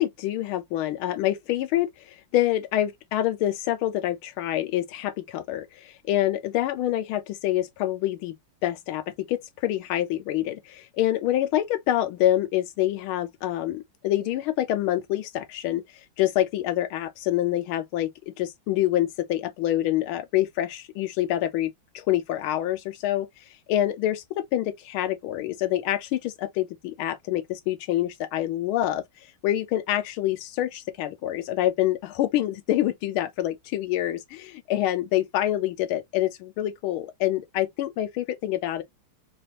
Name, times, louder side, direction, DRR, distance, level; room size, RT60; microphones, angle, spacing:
voice 1, 0.0-1.9 2.3-8.3 8.6-15.8 16.2-23.3 23.7-29.0 29.4-38.8, left 13 dB, 90° left, 1.5 m, -26 dB
4.7 x 2.4 x 2.8 m
omnidirectional pair, 2.3 m